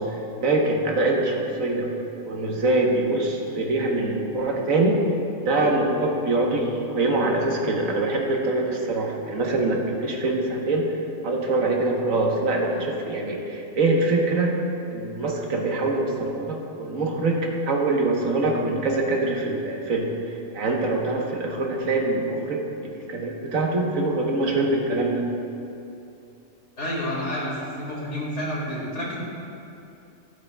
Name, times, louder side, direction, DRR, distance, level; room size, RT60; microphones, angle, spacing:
voice 1, 0.0-1.9 2.2-5.0 5.4-14.6 14.9-25.3, right 2 dB, 85° right, 0 dB, 1.5 m, -24 dB
voice 2, 26.8-29.2, equal, 65° left, -5 dB, 2.4 m, -29 dB
15.0 x 8.1 x 2.2 m, 2.7 s
omnidirectional pair, 1.4 m